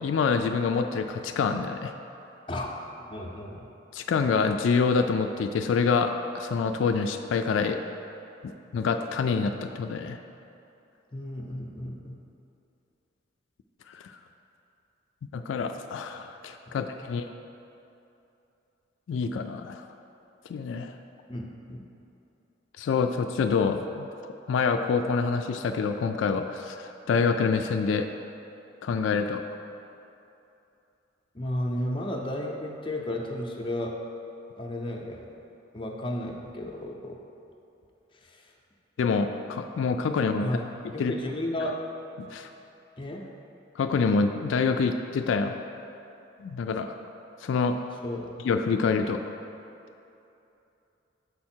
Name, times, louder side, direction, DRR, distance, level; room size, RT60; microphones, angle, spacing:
voice 1, 0.0-1.9 3.9-7.8 8.7-10.2 13.9-14.0 15.3-17.3 19.1-19.8 20.5-20.9 22.8-24.1 24.5-28.1 28.8-29.4 39.0-40.5 41.0-41.1 42.2-42.5 43.8-45.5 46.4-46.9 47.4-47.8 48.4-49.2, left 5 dB, 80° left, 6 dB, 0.3 m, -26 dB
voice 2, 3.1-3.7 11.1-12.2 16.7-16.8 21.3-21.8 31.3-33.9 34.6-35.2 35.7-37.2 38.2-38.4 40.4-40.6 40.9-41.7 43.0-43.3 48.0-48.3, left 1 dB, 25° left, 0 dB, 0.6 m, -33 dB
6.8 x 4.7 x 4.4 m, 2.8 s
head